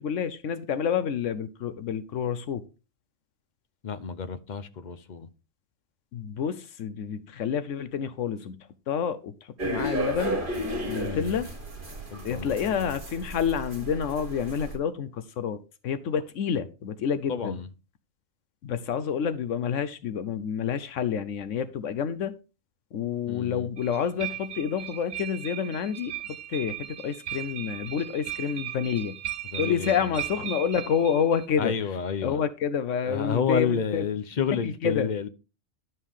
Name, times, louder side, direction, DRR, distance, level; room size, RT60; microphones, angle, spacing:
voice 1, 0.0-2.6 6.1-8.6 8.9-10.4 10.9-11.5 12.2-17.6 18.6-22.3 22.9-26.1 26.5-29.2 29.6-31.7 32.2-34.0 34.6-35.1, left 7 dB, 75° left, 1.0 m, -28 dB
voice 2, 3.8-5.3 11.0-11.4 12.1-13.0 17.3-17.7 23.3-23.7 29.4-30.2 31.6-32.4 33.0-35.3, left 6 dB, 45° left, 0.7 m, -30 dB
sound 1, 9.6-14.8, right 1 dB, 40° right, 2.0 m, -33 dB
sound 2, 23.8-31.5, right 12 dB, 75° right, 1.4 m, -37 dB
11.5 x 5.4 x 3.6 m
omnidirectional pair, 1.3 m